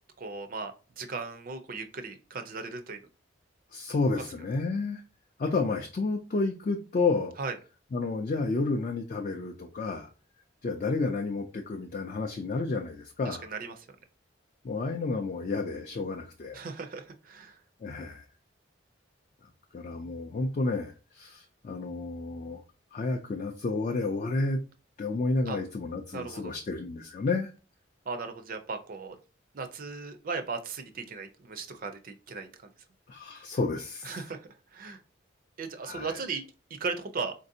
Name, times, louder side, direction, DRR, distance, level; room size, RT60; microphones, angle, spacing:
voice 1, 0.2-3.0 4.1-4.2 7.4-7.5 13.3-13.7 16.5-17.6 25.5-25.6 26.1-26.5 28.1-29.2 29.5-32.5 34.0-35.0 35.6-36.4 36.7-37.3, right 4 dB, 45° right, 8 dB, 0.4 m, -37 dB
voice 2, 3.7-5.0 5.4-7.3 7.9-10.1 10.6-13.5 14.6-16.6 17.8-18.2 19.7-22.6 22.9-24.6 25.0-27.5 33.1-34.2 35.8-36.2, left 3 dB, 40° left, 3 dB, 0.3 m, -31 dB
4.0 x 2.6 x 2.6 m, 0.34 s
head